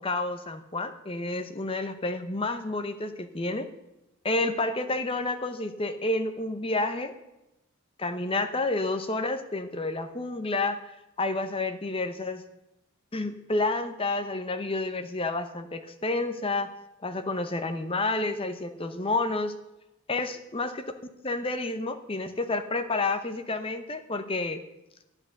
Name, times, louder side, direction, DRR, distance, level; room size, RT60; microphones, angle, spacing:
voice 1, 0.0-3.7 4.2-7.1 8.0-10.8 11.2-12.4 13.1-16.7 17.0-19.5 20.1-20.8 21.2-24.6, left 2 dB, 25° left, 9 dB, 0.8 m, -30 dB
12.5 x 10.5 x 6.5 m, 0.92 s
head